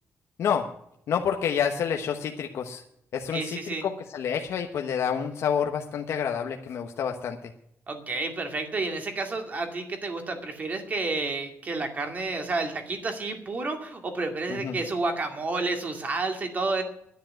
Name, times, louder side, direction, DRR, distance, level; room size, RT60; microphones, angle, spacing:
voice 1, 1.1-2.8 3.1-7.5 14.5-14.8, left 7 dB, 70° left, 3 dB, 1.1 m, -28 dB
voice 2, 3.3-3.9 7.9-16.8, right 3 dB, 35° right, 5 dB, 2.3 m, -30 dB
10.5 x 10.0 x 9.0 m, 0.76 s
wide cardioid pair, 170°, 5 cm